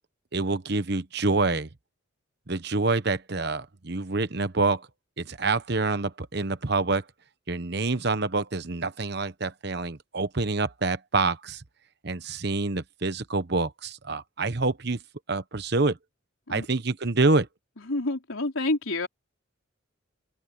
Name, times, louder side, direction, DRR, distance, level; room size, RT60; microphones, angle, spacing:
voice 1, 0.3-1.7 2.5-4.9 5.2-7.0 7.5-11.6 12.0-15.0 15.3-16.0 16.5-17.5, right 3 dB, 55° right, 1.1 m, -27 dB
voice 2, 17.8-19.1, left 2 dB, 85° left, 3.8 m, -28 dB
open air
head